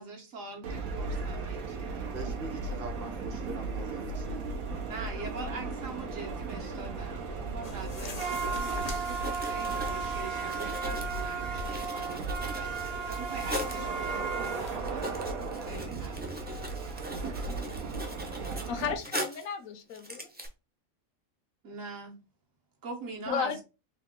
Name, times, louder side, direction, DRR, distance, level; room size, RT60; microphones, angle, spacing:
voice 1, 0.0-2.1 4.8-12.7 13.0-15.1 15.7-16.5 21.6-22.2 22.8-23.6, right 3 dB, 70° right, 1.5 m, -43 dB
sound 1, 0.6-18.9, right 4 dB, 90° right, 1.2 m, -35 dB
voice 2, 2.1-4.7 17.7-18.2, right 3 dB, 50° right, 0.8 m, -43 dB
sound 2, 7.6-10.3 10.7-11.3 12.8-14.8, left 3 dB, 45° left, 0.5 m, -46 dB
Writing, 9.1-13.9 14.4-14.5 14.8-19.5 19.9-20.5, equal, 15° right, 0.4 m, -40 dB
voice 3, 18.7-20.3 23.3-23.6, left 7 dB, 80° left, 1.1 m, -33 dB
3.7 x 3.0 x 3.6 m
omnidirectional pair, 1.4 m